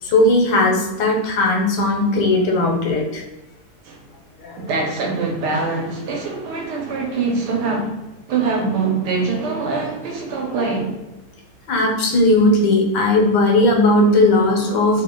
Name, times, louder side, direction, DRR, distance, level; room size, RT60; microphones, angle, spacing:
voice 1, 0.0-3.2 4.4-4.6 11.7-15.0, left 2 dB, 90° left, 1.4 m, -17 dB
voice 2, 4.6-8.0 8.3-11.0, right 4 dB, 75° right, 1.3 m, -23 dB
3.2 x 2.2 x 3.6 m
omnidirectional pair, 1.8 m